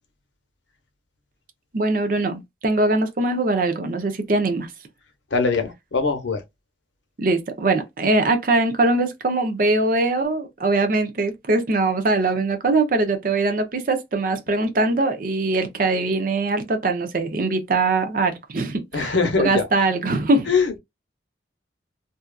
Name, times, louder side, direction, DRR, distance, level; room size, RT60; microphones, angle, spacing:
voice 1, 1.7-4.7 7.2-20.5, right 2 dB, 50° right, 0.5 m, -22 dB
voice 2, 5.3-6.4 18.9-19.7 20.5-20.8, left 4 dB, 85° left, 0.7 m, -22 dB
2.7 x 2.3 x 2.2 m
head